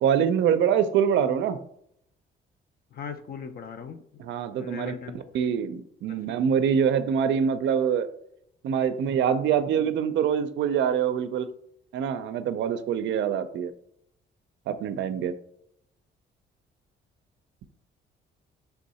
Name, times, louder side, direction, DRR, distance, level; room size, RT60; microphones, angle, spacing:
voice 1, 0.0-1.6 4.2-4.9 5.3-8.1 8.6-11.5 11.9-13.7 14.7-15.3, right 8 dB, 70° right, 11 dB, 0.4 m, -24 dB
voice 2, 2.9-4.3 4.6-5.4 6.1-6.4, left 6 dB, 50° left, 8 dB, 0.4 m, -40 dB
3.4 x 2.7 x 4.1 m, 0.71 s
cardioid pair, 90°, 20 cm